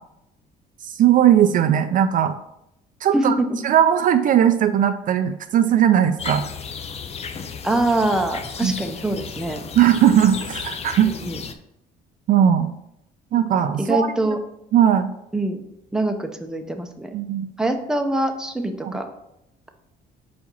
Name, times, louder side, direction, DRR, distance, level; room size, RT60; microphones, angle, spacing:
voice 1, 0.8-2.4 3.0-3.3 3.6-6.4 8.6-8.8 9.8-11.1 12.3-12.7 13.3-14.4 14.7-15.1 17.1-17.5 18.8-18.9, right 10 dB, 50° right, 9 dB, 0.4 m, -18 dB
voice 2, 3.1-3.5 7.6-9.6 11.2-11.4 13.8-14.4 15.3-15.6 15.9-17.1 17.6-19.1, right 1 dB, 5° right, 5 dB, 0.7 m, -23 dB
sound 1, 6.2-11.5, left 6 dB, 40° left, 0.6 m, -34 dB
4.8 x 4.2 x 5.5 m, 0.82 s
cardioid pair, 110°, 17 cm